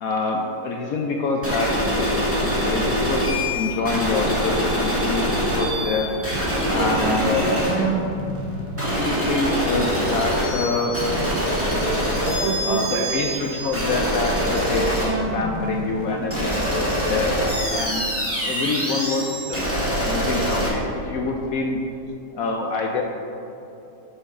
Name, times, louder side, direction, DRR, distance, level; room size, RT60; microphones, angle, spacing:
voice 1, 0.0-1.7 2.0-6.1 6.7-7.4 7.8-8.0 8.9-11.0 12.6-17.4 17.7-18.1 18.4-19.6 20.0-21.8 22.4-23.0, left 3 dB, 90° left, 1 dB, 0.7 m, -26 dB
sound 1, 1.4-20.7, equal, 5° right, 1.5 m, -24 dB
voice 2, 11.2-13.1, right 6 dB, 80° right, 3 dB, 1.5 m, -29 dB
9.1 x 6.4 x 3.7 m, 2.9 s
omnidirectional pair, 2.1 m